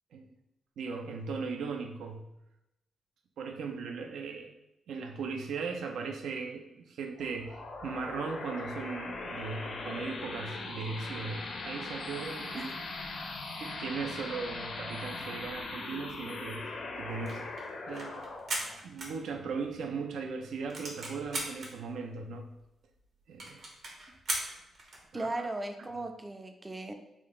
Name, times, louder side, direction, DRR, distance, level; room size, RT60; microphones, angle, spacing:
voice 1, 0.8-2.3 3.4-4.5 4.9-12.7 13.6-17.4 17.9-18.3 18.8-22.5 23.3-23.6 25.1-25.5 25.8-25.9, right 4 dB, 85° right, 4 dB, 0.4 m, -38 dB
sound 1, 7.2-20.3, left 3 dB, 65° left, 0.6 m, -40 dB
sound 2, 17.1-19.8 20.1-20.2 20.4-21.7 22.3-22.4 22.6-22.7 23.0-23.1 23.4-25.1, right 2 dB, 60° right, 1.0 m, -38 dB
voice 2, 25.1-26.9, right 2 dB, 20° right, 5 dB, 0.4 m, -37 dB
3.5 x 2.3 x 3.7 m, 0.87 s
cardioid pair, 90°, 0 cm